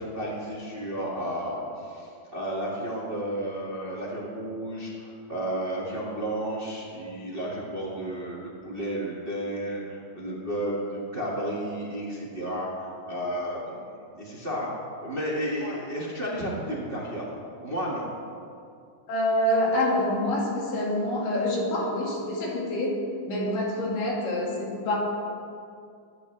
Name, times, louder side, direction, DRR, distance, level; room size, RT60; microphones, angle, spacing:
voice 1, 0.0-12.7 13.0-13.8 14.1-14.7 15.0-17.3 17.5-18.0, right 1 dB, 25° right, -5 dB, 1.4 m, -32 dB
voice 2, 19.1-23.0 23.3-25.0, left 1 dB, 85° left, -2 dB, 3.8 m, -26 dB
23.0 x 9.9 x 3.3 m, 2.4 s
omnidirectional pair, 3.8 m